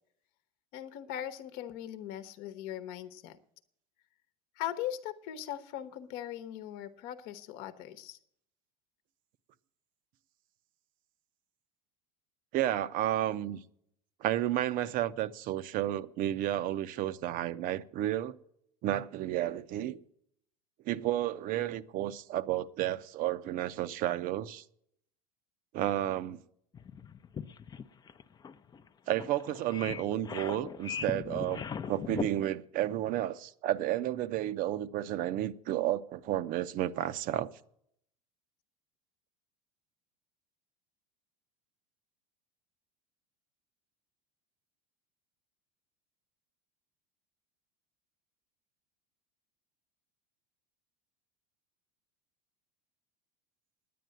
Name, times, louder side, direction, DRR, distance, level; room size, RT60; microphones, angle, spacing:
voice 1, 0.7-3.4 4.6-8.2, left 11 dB, 60° left, 1.0 m, -40 dB
voice 2, 12.5-13.6 14.2-18.3 18.8-20.0 20.9-24.6 25.7-26.4 29.1-31.6 31.9-37.5, right 13 dB, 50° right, 0.7 m, -32 dB
sound 1, 26.7-32.3, left 6 dB, 20° left, 0.5 m, -39 dB
10.0 x 9.4 x 7.8 m
hypercardioid pair, 100°, 18 cm